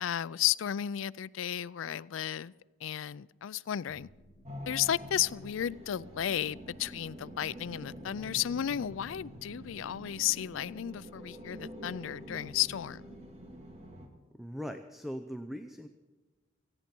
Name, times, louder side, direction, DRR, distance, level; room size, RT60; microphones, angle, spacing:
voice 1, 0.0-2.5 2.8-4.1 4.7-13.2, left 10 dB, 90° left, 0.4 m, -33 dB
sound 1, 3.9-13.9, equal, 20° left, 2.7 m, -58 dB
sound 2, 4.4-14.1, equal, 35° right, 2.0 m, -47 dB
voice 2, 14.3-15.9, equal, ahead, 0.6 m, -40 dB
18.5 x 15.5 x 4.5 m
head